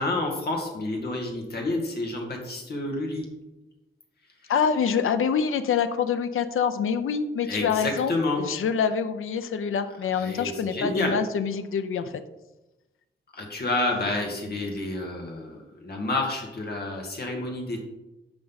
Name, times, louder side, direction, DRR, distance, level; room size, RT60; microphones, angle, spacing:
voice 1, 0.0-3.2 7.5-8.4 10.2-11.1 13.3-17.8, left 2 dB, 50° left, 0 dB, 2.2 m, -29 dB
voice 2, 4.5-12.1, left 7 dB, 80° left, 10 dB, 0.7 m, -26 dB
10.5 x 6.3 x 4.1 m, 1.0 s
wide cardioid pair, 160°, 21 cm